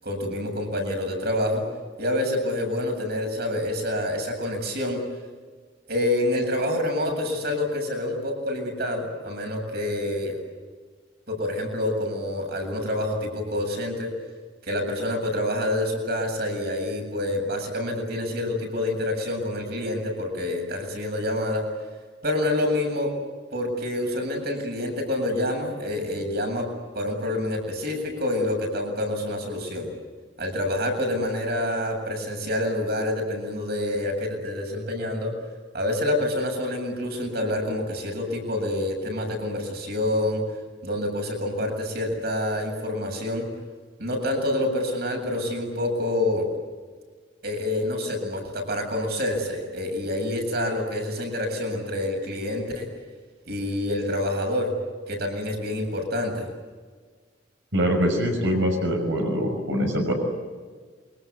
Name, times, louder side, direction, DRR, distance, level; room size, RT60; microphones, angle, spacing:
voice 1, 0.0-1.6 2.0-5.0 5.9-10.4 11.3-14.1 14.6-21.6 22.2-23.1 23.5-26.7 26.9-29.9 30.4-35.3 35.7-40.4 40.8-43.5 44.0-46.4 47.4-52.9 53.4-54.7 55.1-56.5, left 1 dB, 60° right, 3 dB, 7.7 m, -27 dB
voice 2, 57.7-60.1, equal, 85° right, 2 dB, 6.0 m, -23 dB
28.0 x 24.0 x 8.3 m, 1.5 s
head